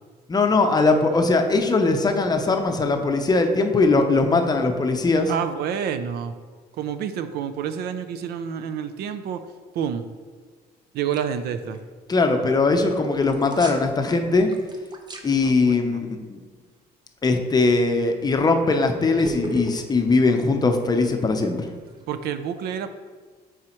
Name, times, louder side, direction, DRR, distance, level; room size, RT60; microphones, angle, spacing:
voice 1, 0.3-5.3 12.1-14.5 15.2-16.4 17.2-21.7, left 3 dB, 25° left, 5 dB, 0.6 m, -20 dB
voice 2, 5.3-6.3 6.8-9.4 9.7-10.1 10.9-11.8 15.4-16.0 22.1-22.9, right 8 dB, 70° right, 11 dB, 0.5 m, -28 dB
sound 1, 11.1-11.4 11.7-11.8 12.9-13.9 14.3-15.3 17.9-18.2 19.2-22.1, right 2 dB, 25° right, 0.7 m, -35 dB
7.4 x 4.8 x 3.0 m, 1.5 s
cardioid pair, 110°, 17 cm